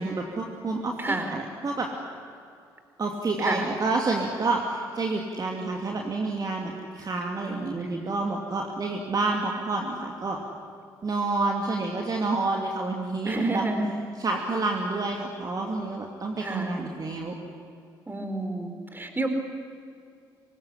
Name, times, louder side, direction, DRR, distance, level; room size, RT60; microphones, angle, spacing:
voice 1, 0.0-1.9 3.0-10.4 11.0-13.6 14.2-17.3, right 3 dB, 35° right, 0 dB, 2.8 m, -29 dB
voice 2, 1.0-1.3 3.4-3.6 7.4-8.0 13.2-13.9 16.4-16.8 18.1-19.3, right 2 dB, 15° right, 6 dB, 4.4 m, -30 dB
25.5 x 21.0 x 10.0 m, 2.4 s
figure-of-eight pair, 45°, 12 cm